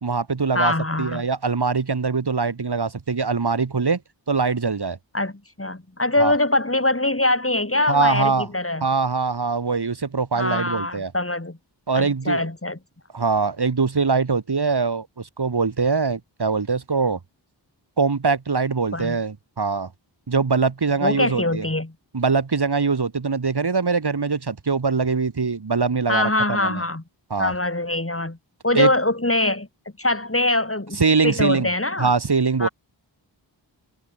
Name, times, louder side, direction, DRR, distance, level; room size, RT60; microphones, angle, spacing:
voice 1, 0.0-0.7 1.0-4.0 4.3-5.0 6.2-6.3 7.9-8.5 8.8-11.1 11.9-12.4 13.1-17.2 18.0-19.9 20.3-21.6 22.1-26.8 27.3-27.5 28.7-28.9 31.0-31.7 32.0-32.7, right 4 dB, 60° right, 1.6 m, -22 dB
voice 2, 0.5-1.2 5.1-8.9 10.3-11.6 11.9-12.8 18.9-19.2 21.0-21.9 26.1-27.0 27.4-28.4 28.6-29.7 30.0-32.1 32.6-32.7, left 2 dB, 30° left, 4.7 m, -23 dB
wide cardioid pair, 45°, 45 cm